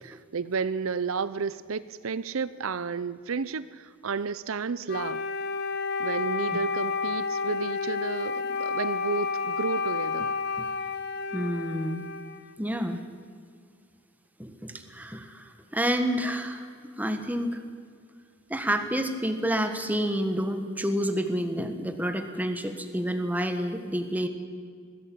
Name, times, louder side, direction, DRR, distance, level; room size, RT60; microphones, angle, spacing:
voice 1, 0.0-5.2 6.0-10.3, right 5 dB, 85° right, 16 dB, 0.6 m, -32 dB
Wind instrument woodwind instrument, 4.9-12.6, left 4 dB, 50° left, 0.9 m, -31 dB
voice 2, 11.3-12.0 12.6-13.0 14.4-15.4 15.7-16.7 17.0-17.6 18.5-24.3, equal, 10° right, 7 dB, 1.5 m, -29 dB
20.0 x 16.0 x 8.7 m, 2.1 s
head